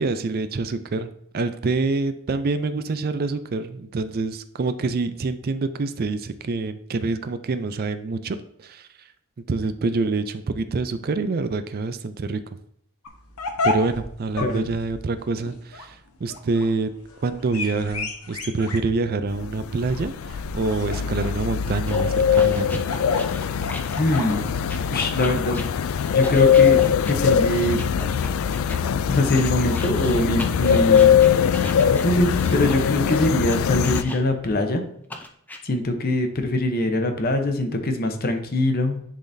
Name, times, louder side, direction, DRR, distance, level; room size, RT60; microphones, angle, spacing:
voice 1, 0.0-9.1 9.5-12.6 13.6-16.9 17.2-22.8, right 3 dB, 45° right, 11 dB, 0.4 m, -26 dB
sound 1, 13.0-29.7, left 3 dB, 80° left, 1.0 m, -34 dB
sound 2, 19.3-34.0, left 8 dB, 65° left, 0.3 m, -21 dB
sound 3, 21.9-28.8 29.3-34.5 35.1-35.6, left 1 dB, 10° left, 0.5 m, -38 dB
voice 2, 24.0-24.6 24.9-25.6 26.1-27.8 29.1-31.5 32.0-34.8 35.6-39.0, left 1 dB, 45° left, 6 dB, 0.8 m, -23 dB
10.0 x 3.9 x 2.7 m, 0.71 s
head